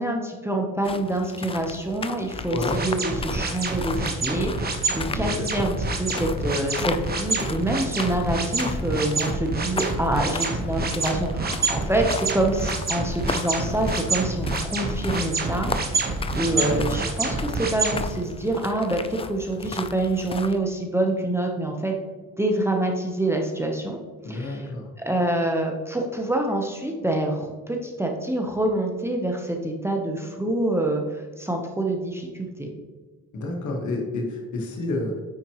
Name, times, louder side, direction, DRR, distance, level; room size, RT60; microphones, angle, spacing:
voice 1, 0.0-15.7 16.0-16.1 16.4-22.0 22.4-24.0 24.2-24.7 25.0-32.7, right 1 dB, 10° right, 1 dB, 0.9 m, -26 dB
sound 1, 0.8-20.6, left 4 dB, 20° left, 0.4 m, -36 dB
sound 2, 2.7-18.0, right 3 dB, 30° right, 1.2 m, -27 dB
voice 2, 5.1-5.4 16.4-17.0 24.2-24.9 33.3-35.2, left 2 dB, 65° left, 0 dB, 1.7 m, -30 dB
9.5 x 4.4 x 3.0 m, 1.3 s
cardioid pair, 100°, 32 cm